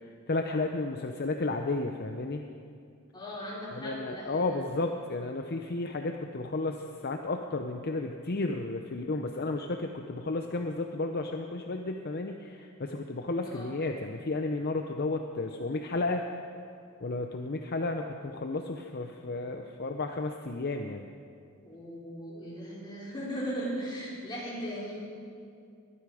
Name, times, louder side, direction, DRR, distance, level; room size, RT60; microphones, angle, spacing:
voice 1, 0.3-2.4 3.7-16.2 17.0-21.1, left 2 dB, 45° left, 5 dB, 0.6 m, -33 dB
voice 2, 3.1-4.6 13.4-13.7 21.5-25.0, equal, 20° left, -6 dB, 4.4 m, -38 dB
22.0 x 11.5 x 4.9 m, 2.4 s
head